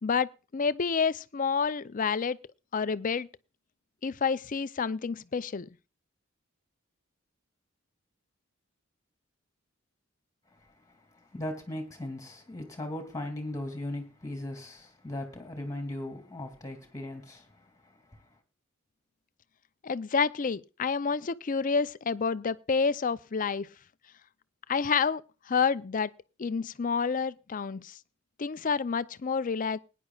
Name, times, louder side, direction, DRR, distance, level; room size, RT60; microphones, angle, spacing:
voice 1, 0.0-2.4 2.7-3.3 4.0-5.7 19.8-23.7 24.7-26.1 26.4-28.0 28.4-29.8, left 5 dB, 40° left, 0.5 m, -29 dB
voice 2, 10.6-18.3, left 1 dB, 15° left, 2.6 m, -39 dB
21.0 x 10.0 x 2.3 m
head